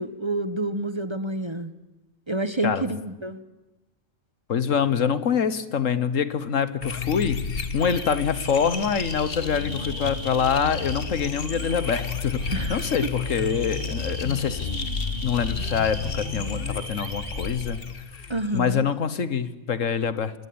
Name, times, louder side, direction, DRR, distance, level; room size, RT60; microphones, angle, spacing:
voice 1, 0.0-1.7 2.3-3.4 12.5-12.8 18.3-18.9, right 2 dB, 25° right, 11 dB, 1.1 m, -28 dB
voice 2, 4.5-14.7 15.2-17.8 18.5-20.3, left 7 dB, 80° left, 13 dB, 1.6 m, -25 dB
sound 1, 6.8-18.8, left 4 dB, 50° left, 1.6 m, -31 dB
sound 2, 7.8-17.8, right 2 dB, 65° right, 7.4 m, -42 dB
26.5 x 21.0 x 8.8 m, 1.0 s
omnidirectional pair, 1.3 m